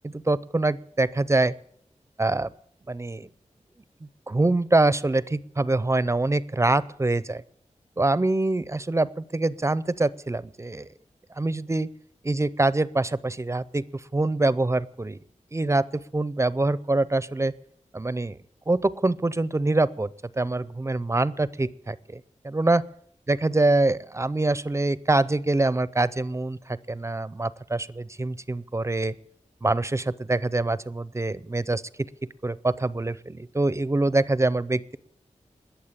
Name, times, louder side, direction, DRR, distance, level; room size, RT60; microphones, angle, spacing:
voice 1, 0.0-1.5 2.2-2.5 2.9-3.3 4.3-7.4 8.0-10.9 11.4-11.9 12.2-15.2 15.5-17.5 17.9-18.4 18.7-20.1 20.4-22.8 23.3-29.2 29.6-32.1 32.4-35.0, right 2 dB, 25° right, 18 dB, 0.5 m, -25 dB
20.5 x 7.1 x 8.5 m, 0.66 s
wide cardioid pair, 100°, 13 cm